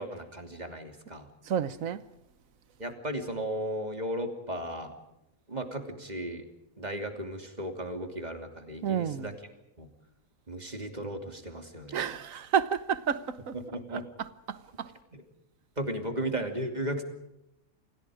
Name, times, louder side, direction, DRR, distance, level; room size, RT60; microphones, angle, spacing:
voice 1, 0.0-1.3 2.8-4.9 5.5-6.4 6.8-9.3 9.8-9.9 10.5-12.0 13.5-14.0 15.1-15.2 15.8-17.0, right 1 dB, 30° right, 3.0 m, -35 dB
voice 2, 1.5-2.0 8.8-9.4 11.9-13.6 13.9-14.9, right 8 dB, 70° right, 1.5 m, -31 dB
29.5 x 27.0 x 5.0 m
omnidirectional pair, 1.5 m